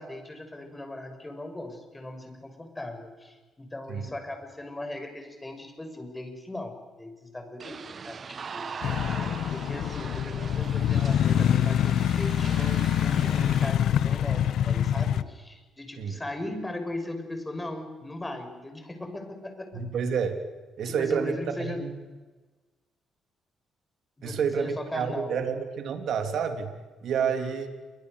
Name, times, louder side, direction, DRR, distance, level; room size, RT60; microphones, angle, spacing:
voice 1, 0.0-8.7 9.5-19.8 20.8-21.8 24.2-25.4 27.2-27.5, left 1 dB, 15° left, 6 dB, 6.3 m, -38 dB
sound 1, 7.6-13.7, right 6 dB, 45° right, 0.9 m, -40 dB
sound 2, 8.8-15.2, left 10 dB, 75° left, 1.0 m, -25 dB
voice 2, 19.7-20.4 20.8-22.0 24.2-26.7 27.0-27.7, right 6 dB, 70° right, 6 dB, 3.2 m, -29 dB
28.5 x 24.0 x 6.7 m, 1.3 s
cardioid pair, 90°, 0 cm